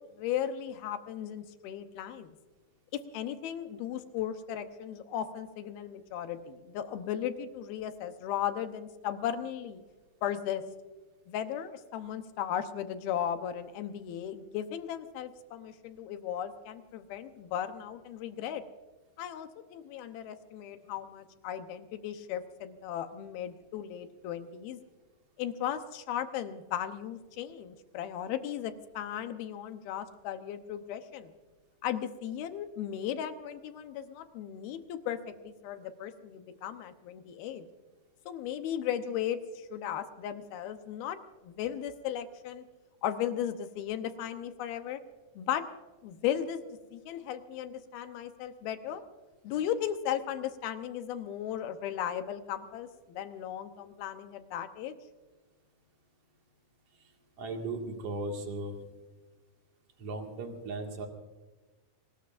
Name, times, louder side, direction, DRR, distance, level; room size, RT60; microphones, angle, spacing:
voice 1, 0.2-2.4 3.1-9.8 10.2-10.6 11.3-18.6 19.2-24.8 25.4-31.3 31.8-35.2 35.4-37.7 38.3-41.2 41.4-42.6 43.0-45.0 45.4-45.6 46.0-46.6 46.9-49.0 49.4-54.9, left 10 dB, 75° left, 8 dB, 2.5 m, -36 dB
voice 2, 57.4-58.8 60.0-61.1, right 2 dB, 45° right, 2 dB, 2.3 m, -36 dB
24.5 x 19.5 x 2.5 m, 1.2 s
omnidirectional pair, 5.0 m